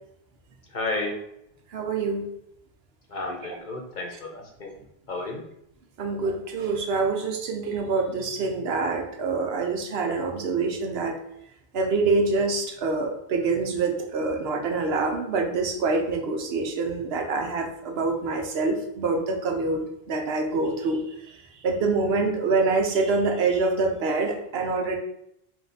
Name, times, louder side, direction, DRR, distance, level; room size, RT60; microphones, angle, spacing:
voice 1, 0.7-1.2 3.1-4.8 5.1-5.4, left 2 dB, 50° left, 1 dB, 0.8 m, -32 dB
voice 2, 1.7-2.3 6.0-11.2 11.7-21.0 21.6-25.0, right 3 dB, 75° right, 3 dB, 0.9 m, -26 dB
3.5 x 2.6 x 4.0 m, 0.77 s
omnidirectional pair, 1.1 m